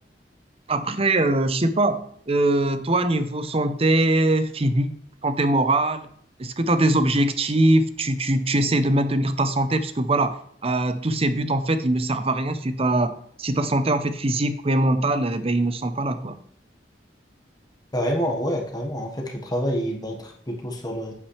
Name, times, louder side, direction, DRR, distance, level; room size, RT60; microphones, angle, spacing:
voice 1, 0.7-4.9 5.2-6.1 6.4-13.1 13.4-16.4, right 2 dB, 35° right, 11 dB, 0.7 m, -22 dB
voice 2, 17.9-21.1, equal, 20° left, 1 dB, 1.4 m, -27 dB
8.6 x 8.6 x 3.3 m, 0.65 s
head